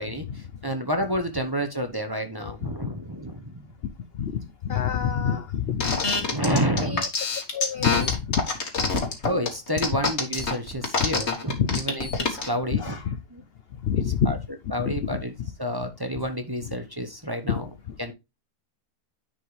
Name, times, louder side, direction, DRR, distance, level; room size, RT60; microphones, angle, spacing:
voice 1, 0.0-3.6 6.2-7.0 9.2-13.0 13.3-13.4 14.2-14.4 14.7-15.3 15.6-17.7 18.0-18.1, equal, 15° right, 0.9 m, -29 dB
voice 2, 4.6-6.3 6.8-7.1 7.5-8.4 8.8-8.9 11.6-11.8 12.8-13.2 13.8-14.4 14.9-15.2, left 8 dB, 65° left, 0.6 m, -27 dB
sound 1, 5.8-12.5, left 4 dB, 45° left, 1.9 m, -25 dB
10.0 x 5.1 x 3.3 m
omnidirectional pair, 1.7 m